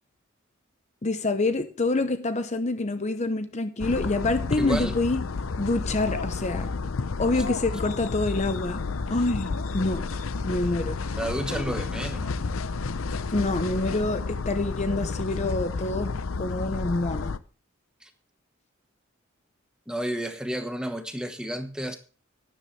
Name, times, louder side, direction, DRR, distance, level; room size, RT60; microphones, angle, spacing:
voice 1, 1.0-5.2 5.6-6.7 7.2-8.8 9.1-10.1 10.4-11.0 13.3-16.1 16.4-17.3, left 2 dB, 35° left, 10 dB, 0.8 m, -26 dB
sound 1, 3.8-17.4, left 4 dB, 85° left, 0.6 m, -31 dB
voice 2, 4.5-5.0 11.2-12.3 18.0-18.1 19.9-22.0, right 1 dB, 5° right, 7 dB, 1.2 m, -31 dB
12.0 x 10.5 x 3.3 m, 0.36 s
head